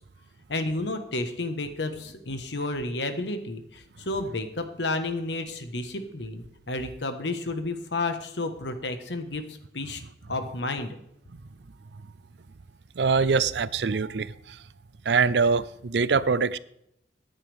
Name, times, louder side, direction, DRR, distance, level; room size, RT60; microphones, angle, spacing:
voice 1, 0.5-10.0 10.3-10.9, left 2 dB, 85° left, 1.4 m, -31 dB
voice 2, 13.0-14.6 15.1-16.6, right 5 dB, 80° right, 0.5 m, -24 dB
15.0 x 9.7 x 3.5 m
head